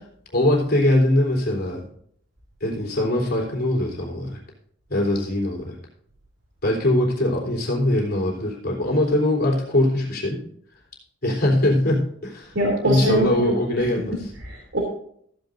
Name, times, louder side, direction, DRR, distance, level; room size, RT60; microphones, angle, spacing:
voice 1, 0.3-1.8 2.6-4.4 4.9-5.8 6.6-10.4 11.2-12.6 12.8-14.3, left 1 dB, 55° left, 0 dB, 3.6 m, -22 dB
voice 2, 12.5-14.8, right 1 dB, 65° right, -1 dB, 3.0 m, -25 dB
15.0 x 10.5 x 2.7 m, 0.63 s
head